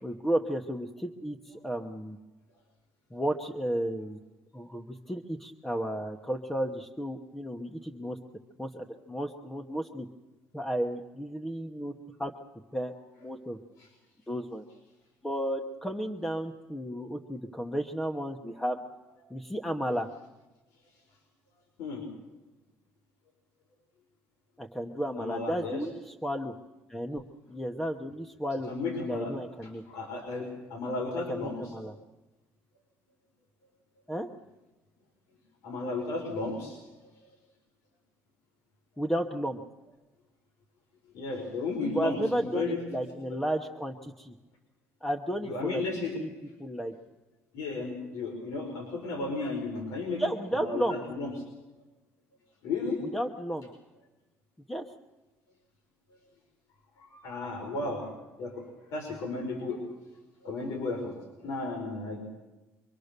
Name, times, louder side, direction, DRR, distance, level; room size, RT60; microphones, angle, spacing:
voice 1, 0.0-2.2 3.1-4.2 4.5-8.2 8.6-10.1 10.5-11.9 12.2-12.3 12.7-12.9 13.2-13.6 14.3-14.6 15.2-18.8 19.3-20.1 24.6-26.5 26.9-28.7 29.1-29.8 31.3-31.9 34.1-34.3 39.0-39.6 41.9-44.3 45.0-46.3 46.6-46.9 50.2-51.0 53.1-53.7 54.7-54.9, equal, 5° left, 4 dB, 1.0 m, -33 dB
voice 2, 25.2-25.8 28.7-29.3 29.6-31.7 35.6-36.8 41.1-42.8 45.5-46.2 47.5-50.2 50.5-51.3 52.6-53.0 57.0-58.1 58.4-58.7 58.9-59.8 60.4-61.2 61.4-62.2, left 3 dB, 85° left, 2 dB, 4.9 m, -34 dB
24.5 x 24.0 x 6.7 m, 1.1 s
cardioid pair, 170°, 5 cm